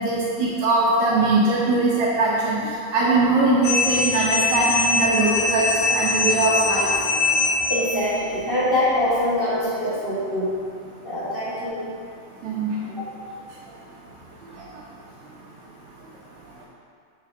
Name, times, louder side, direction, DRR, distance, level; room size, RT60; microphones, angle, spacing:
voice 1, 0.0-2.6 2.9-6.9 12.4-12.7, right 2 dB, 75° right, -7 dB, 2.1 m, -21 dB
sound 1, 3.6-8.1, left 3 dB, 80° left, 1.3 m, -22 dB
voice 2, 7.7-10.5 11.0-11.8 13.0-13.1, left 1 dB, 60° right, -12 dB, 0.5 m, -24 dB
5.8 x 4.9 x 4.5 m, 2.4 s
omnidirectional pair, 3.5 m